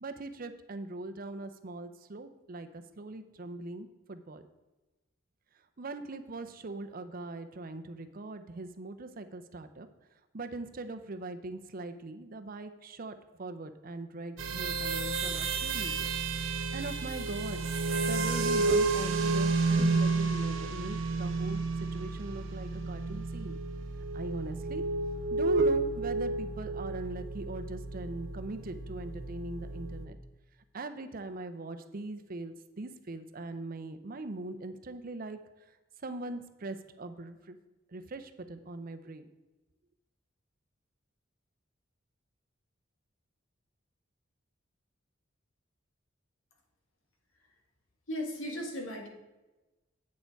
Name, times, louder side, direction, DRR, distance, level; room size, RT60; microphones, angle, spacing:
voice 1, 0.0-4.4 5.8-9.9 10.3-16.1 16.7-17.6 18.1-21.6 21.9-23.6 24.1-24.8 25.3-30.2 30.7-35.4 36.0-37.6 37.9-39.3, right 2 dB, 45° right, 9 dB, 0.6 m, -41 dB
sound 1, 14.4-30.1, right 3 dB, 85° right, 0.8 m, -31 dB
voice 2, 48.1-49.1, equal, 85° left, 1 dB, 1.9 m, -36 dB
8.4 x 6.7 x 4.6 m, 1.1 s
head